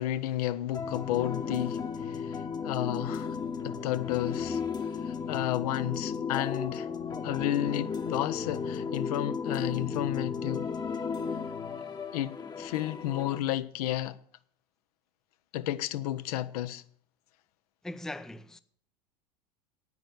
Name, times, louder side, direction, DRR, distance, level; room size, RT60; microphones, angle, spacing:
voice 1, 0.0-3.4 3.6-4.6 5.0-6.9 7.2-10.7 12.1-14.2 15.5-16.8, left 13 dB, 65° left, 0.7 m, -32 dB
sound 1, 0.7-13.4, left 6 dB, 20° left, 1.0 m, -34 dB
voice 2, 17.8-18.6, left 1 dB, ahead, 0.5 m, -40 dB
9.6 x 9.1 x 7.9 m
hypercardioid pair, 90°, 21 cm